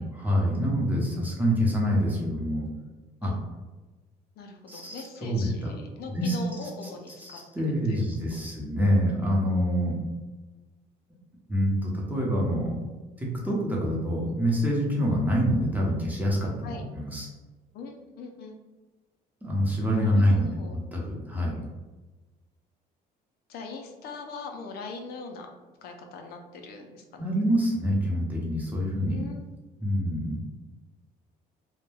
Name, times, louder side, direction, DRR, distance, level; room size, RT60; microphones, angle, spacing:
voice 1, 0.0-2.7 3.2-3.3 4.7-5.7 6.1-6.4 7.2-10.0 11.5-12.8 13.2-17.3 19.4-20.5 20.9-21.6 27.2-29.2 29.8-30.4, equal, 10° right, -3 dB, 0.7 m, -26 dB
voice 2, 4.4-7.4 7.7-8.0 16.6-16.8 17.7-18.5 20.0-20.8 23.5-25.5 25.8-27.3 29.1-29.4, left 4 dB, 70° left, 3 dB, 0.4 m, -41 dB
2.2 x 2.1 x 3.2 m, 1.2 s
cardioid pair, 110°, 17 cm